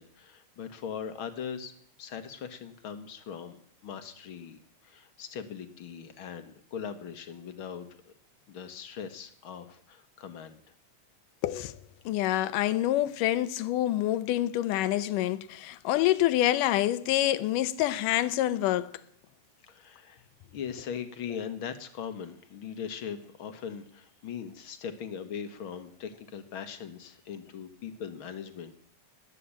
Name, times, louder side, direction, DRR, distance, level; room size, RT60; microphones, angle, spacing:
voice 1, 0.0-8.1 8.5-10.7 19.7-20.3 20.5-28.7, left 7 dB, 55° left, 1.7 m, -40 dB
voice 2, 11.4-11.8 12.1-18.9, left 14 dB, 85° left, 2.4 m, -27 dB
19.5 x 8.5 x 8.7 m
omnidirectional pair, 3.7 m